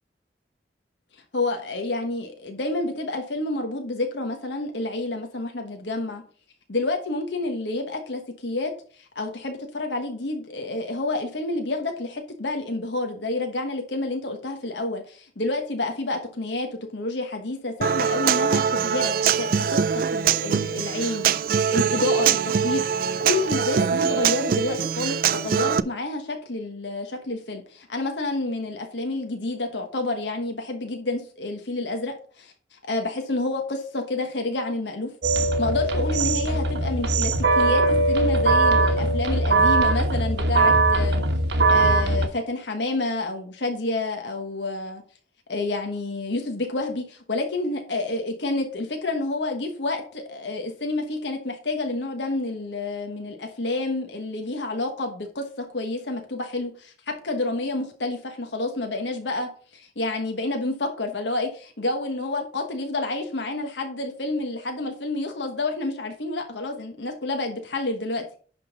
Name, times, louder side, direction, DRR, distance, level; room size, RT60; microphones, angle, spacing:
voice 1, 1.3-6.2 6.7-8.7 9.0-21.3 21.7-41.2 41.7-45.0 45.5-68.2, left 2 dB, 90° left, 4 dB, 1.3 m, -29 dB
Human voice / Acoustic guitar, 17.8-25.8, right 7 dB, 55° right, 0.3 m, -23 dB
sound 1, 35.2-42.3, right 2 dB, 80° right, 1.1 m, -20 dB
10.5 x 3.9 x 5.2 m, 0.42 s
head